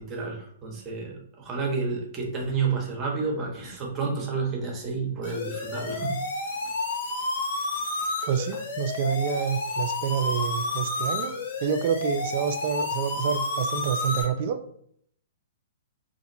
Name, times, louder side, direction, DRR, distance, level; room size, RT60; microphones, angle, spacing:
voice 1, 0.0-6.1, right 4 dB, 25° right, 0.9 m, -30 dB
sound 1, 5.2-14.2, left 2 dB, 60° left, 0.7 m, -30 dB
voice 2, 8.3-11.3 11.6-14.6, right 8 dB, 50° right, 0.3 m, -28 dB
2.8 x 2.5 x 2.6 m
hypercardioid pair, 125°, 0 cm